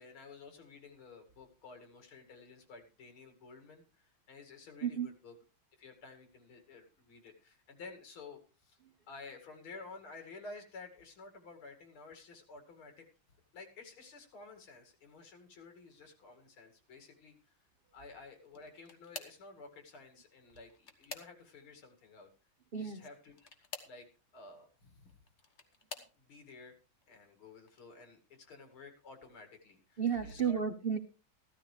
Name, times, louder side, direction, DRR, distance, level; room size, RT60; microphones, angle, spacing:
voice 1, 0.0-5.3 5.8-8.8 9.1-13.1 13.5-17.3 17.9-22.3 22.8-23.5 23.8-24.1 24.3-25.1 26.2-26.7 27.1-30.6, left 4 dB, 85° left, 5 dB, 3.1 m, -52 dB
sound 1, 18.4-19.5 20.4-21.7 23.3-24.0 25.1-26.2 26.9-27.3 27.7-27.8 29.2-29.3, left 4 dB, 40° left, 1.3 m, -48 dB
voice 2, 30.0-31.0, right 7 dB, 85° right, 6 dB, 0.5 m, -32 dB
14.5 x 13.0 x 3.3 m, 0.33 s
omnidirectional pair, 2.3 m